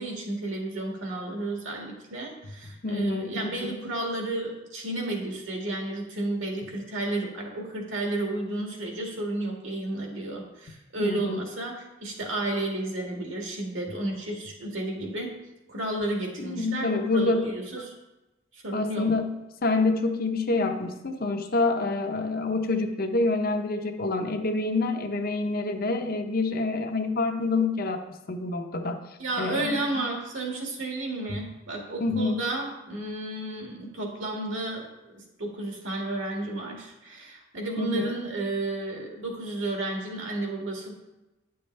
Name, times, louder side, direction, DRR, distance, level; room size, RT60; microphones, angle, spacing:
voice 1, 0.0-15.3 15.7-17.9 18.5-19.1 29.2-40.9, right 2 dB, 70° right, 0 dB, 1.9 m, -32 dB
voice 2, 2.8-3.8 11.0-11.5 16.4-17.5 18.7-29.0 29.4-29.8 31.3-31.4 32.0-32.4 37.8-38.1, left 3 dB, 50° left, 5 dB, 0.8 m, -27 dB
9.6 x 6.8 x 3.3 m, 0.99 s
head